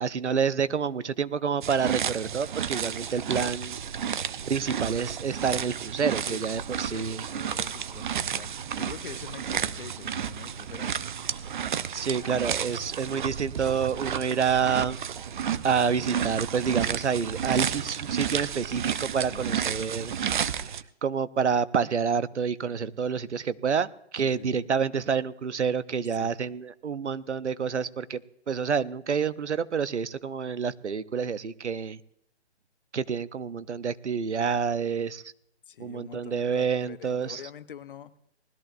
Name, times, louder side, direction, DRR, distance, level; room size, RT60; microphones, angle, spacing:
voice 1, 0.0-3.8 4.5-7.3 11.9-15.0 15.6-20.8 21.0-28.2 28.5-32.0 32.9-35.2 35.8-37.4, right 6 dB, 90° right, 16 dB, 0.8 m, -28 dB
sound 1, 1.6-20.8, right 8 dB, 45° right, 0.6 m, -32 dB
voice 2, 6.3-10.9 11.6-11.7 12.0-12.5 19.3-19.6 24.2-24.6 26.1-26.3 35.7-38.2, left 8 dB, 50° left, 14 dB, 0.9 m, -45 dB
20.0 x 13.5 x 2.5 m, 0.77 s
hypercardioid pair, 145°, 34 cm